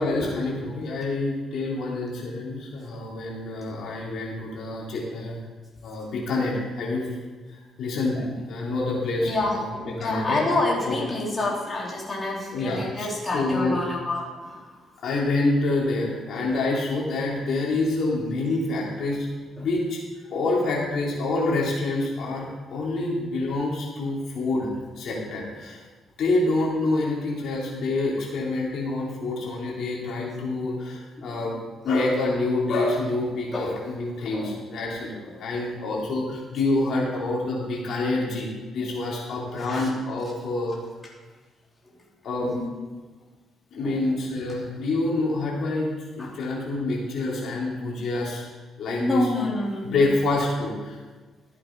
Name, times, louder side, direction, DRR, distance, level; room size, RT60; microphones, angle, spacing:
voice 1, 0.0-5.4 5.8-7.1 7.5-10.4 10.9-11.1 12.5-13.8 15.0-19.3 19.6-20.0 20.3-24.7 25.0-25.8 26.2-31.6 31.8-40.8 42.2-42.5 43.7-48.4 48.8-49.3 49.8-51.0, left 2 dB, 70° left, -4 dB, 3.3 m, -27 dB
voice 2, 9.3-14.6 19.6-19.7 33.5-33.7 34.3-34.6 39.7-39.9 42.5-42.7 43.8-44.0 46.2-46.3 49.0-50.0, left 2 dB, 25° left, -5 dB, 3.5 m, -27 dB
14.0 x 8.6 x 4.7 m, 1.3 s
cardioid pair, 90°, 0 cm